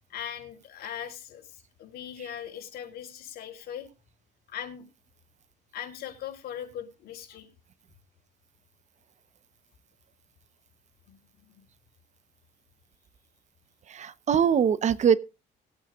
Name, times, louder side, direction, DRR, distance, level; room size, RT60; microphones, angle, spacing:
voice 1, 0.1-3.9 4.5-4.9 5.7-7.5 11.1-11.6, left 9 dB, 65° left, 3.8 m, -40 dB
voice 2, 13.9-15.2, right 8 dB, 45° right, 0.9 m, -22 dB
19.5 x 8.9 x 2.4 m
cardioid pair, 110°, 17 cm